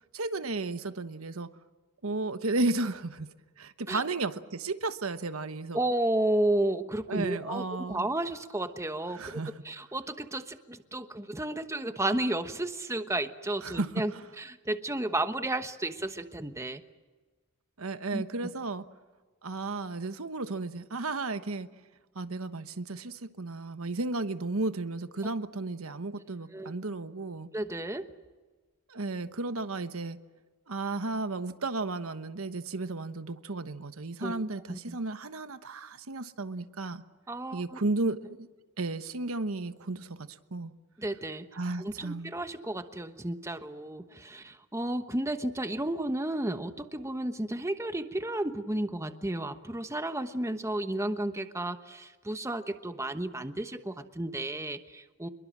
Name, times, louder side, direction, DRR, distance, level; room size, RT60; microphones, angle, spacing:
voice 1, 0.1-1.5 2.0-5.8 7.1-8.1 9.1-9.6 13.6-14.2 17.8-18.8 19.4-21.7 22.1-27.5 28.9-30.2 30.7-37.0 37.5-38.5 38.8-40.7 41.5-42.3, right 3 dB, 90° right, 11 dB, 1.2 m, -33 dB
voice 2, 5.7-9.2 9.6-14.1 14.4-16.8 18.1-18.2 26.5-26.7 27.5-28.1 34.2-34.4 34.7-35.0 37.3-37.8 41.0-41.5 41.8-55.3, right 1 dB, 15° right, 9 dB, 1.1 m, -32 dB
26.5 x 22.5 x 7.5 m, 1.3 s
head